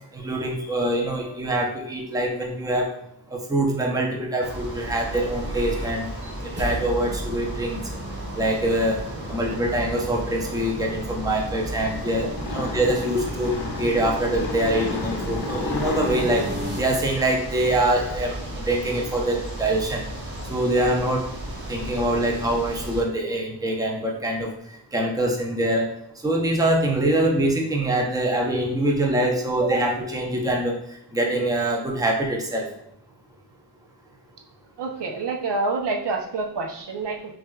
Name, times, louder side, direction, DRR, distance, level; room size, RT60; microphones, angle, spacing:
voice 1, 0.1-2.9 3.3-6.1 6.4-7.8 8.4-9.0 9.3-13.5 13.8-16.5 16.7-20.0 20.5-21.3 21.7-24.5 24.9-25.9 26.2-30.8 31.1-32.7, right 1 dB, 10° right, 0 dB, 0.6 m, -24 dB
sound 1, 4.4-23.0, right 1 dB, 55° right, 1.4 m, -35 dB
sound 2, 4.7-16.8, right 1 dB, 25° right, 1.5 m, -36 dB
sound 3, 12.3-17.7, left 4 dB, 65° left, 0.7 m, -34 dB
voice 2, 34.8-37.3, right 3 dB, 75° right, 1 dB, 0.7 m, -27 dB
5.9 x 2.4 x 2.3 m, 0.71 s
wide cardioid pair, 80°, 42 cm